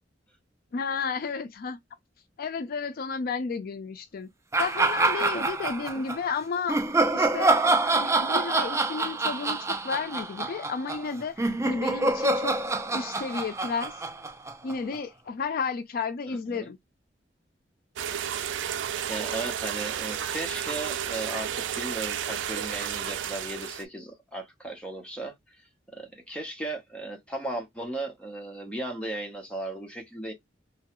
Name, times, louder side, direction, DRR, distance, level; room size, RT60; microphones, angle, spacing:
voice 1, 0.7-1.8 2.4-4.3 4.6-6.8 7.1-7.6 7.9-12.6 12.9-14.0 14.6-16.8, left 5 dB, 55° left, 0.4 m, -32 dB
sound 1, 4.5-6.2 6.7-15.0, right 2 dB, 15° right, 0.4 m, -26 dB
sound 2, 18.0-23.8, right 9 dB, 85° right, 0.4 m, -32 dB
voice 2, 19.1-25.3 25.9-30.3, right 2 dB, 5° left, 0.9 m, -36 dB
3.0 x 2.2 x 2.9 m
head